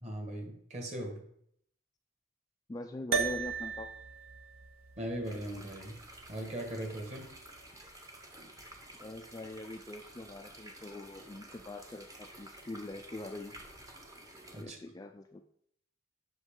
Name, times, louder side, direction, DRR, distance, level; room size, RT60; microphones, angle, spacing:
voice 1, 0.0-1.2 5.0-6.0 6.3-7.3 14.5-14.8, right 1 dB, 35° right, 2 dB, 1.7 m, -39 dB
voice 2, 2.7-3.9 9.0-13.6 14.6-15.4, left 2 dB, 20° left, 5 dB, 0.3 m, -43 dB
sound 1, 3.1-7.7, right 6 dB, 75° right, 0.8 m, -38 dB
sound 2, 5.2-14.6, right 1 dB, 15° right, 0.9 m, -52 dB
7.9 x 5.5 x 3.8 m, 0.69 s
head